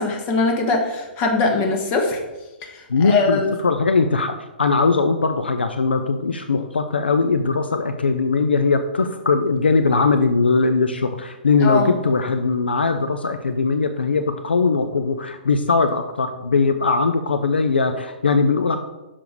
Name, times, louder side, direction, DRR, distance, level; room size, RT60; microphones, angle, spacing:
voice 1, 0.0-2.2 2.7-3.5 11.6-11.9, left 3 dB, 30° left, 2 dB, 1.5 m, -21 dB
voice 2, 2.9-18.8, left 4 dB, 75° left, 8 dB, 0.5 m, -20 dB
6.9 x 5.6 x 4.8 m, 1.1 s
figure-of-eight pair, 120°, 6 cm